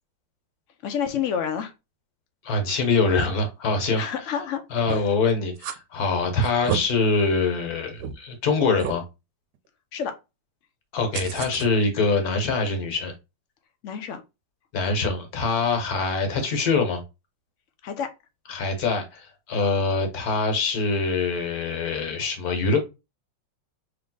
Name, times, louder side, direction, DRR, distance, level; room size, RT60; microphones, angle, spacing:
voice 1, 0.8-1.7 4.0-4.6 4.9-5.0 9.9-10.1 13.8-14.2 17.8-18.1, left 8 dB, 85° left, 0.6 m, -28 dB
voice 2, 2.4-4.0 4.7-9.0 10.9-13.1 14.7-17.0 18.5-22.8, left 3 dB, 55° left, 1.5 m, -24 dB
sound 1, 4.9-5.1 5.6-5.8 6.4-6.8 7.4-7.5 8.0-8.1 8.8-9.0 11.1-11.7, right 9 dB, 70° right, 1.1 m, -30 dB
3.5 x 3.0 x 3.7 m
omnidirectional pair, 2.0 m